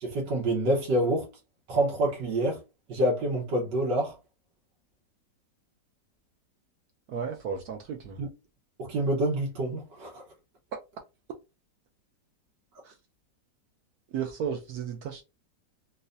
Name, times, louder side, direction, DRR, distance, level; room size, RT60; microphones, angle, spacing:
voice 1, 0.0-1.3 1.7-2.6 2.9-4.1 8.2-8.3 8.8-10.2, right 1 dB, 85° right, 1.8 m, -27 dB
voice 2, 7.1-8.2 10.7-10.8 14.1-15.2, right 7 dB, 70° right, 1.0 m, -33 dB
3.9 x 2.6 x 2.6 m
omnidirectional pair, 1.9 m